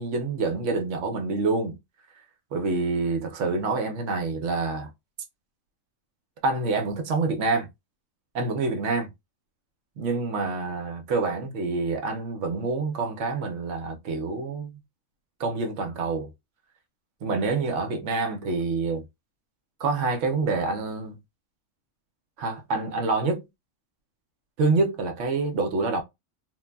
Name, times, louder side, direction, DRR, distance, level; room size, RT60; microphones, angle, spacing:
voice 1, 0.0-1.8 2.5-4.9 6.4-7.7 8.3-9.1 10.0-14.8 15.4-16.3 17.2-19.0 19.8-21.2 22.4-23.4 24.6-26.0, right 3 dB, 70° right, 0.9 m, -27 dB
3.1 x 2.1 x 2.2 m
omnidirectional pair, 1.4 m